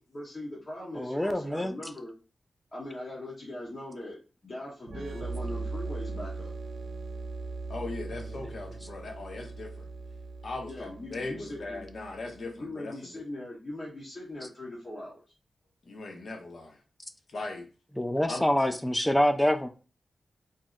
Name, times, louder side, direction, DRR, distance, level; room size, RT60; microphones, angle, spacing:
voice 1, 0.1-2.1 2.7-4.2 4.4-6.5 10.7-11.9 12.3-15.2, left 1 dB, 40° left, -6 dB, 0.9 m, -40 dB
voice 2, 1.0-1.7 18.0-19.7, left 1 dB, 10° left, 8 dB, 0.4 m, -26 dB
sound 1, 4.9-12.4, right 3 dB, 75° right, 0.5 m, -39 dB
voice 3, 7.7-9.9 10.4-12.9 15.8-16.8 17.3-17.7 18.3-18.4, left 2 dB, 65° left, 3 dB, 0.8 m, -39 dB
2.7 x 2.0 x 3.6 m, 0.35 s
cardioid pair, 65°, 0 cm